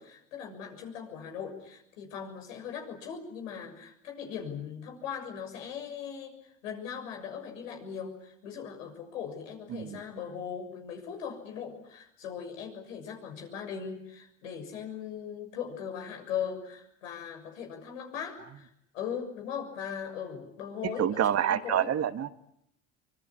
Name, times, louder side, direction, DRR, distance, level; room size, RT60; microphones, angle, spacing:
voice 1, 0.0-21.9, left 7 dB, 85° left, 3 dB, 6.7 m, -39 dB
voice 2, 9.7-10.0 20.8-22.3, right 10 dB, 40° right, 11 dB, 1.5 m, -27 dB
24.5 x 22.0 x 9.9 m, 0.76 s
hypercardioid pair, 80°, 38 cm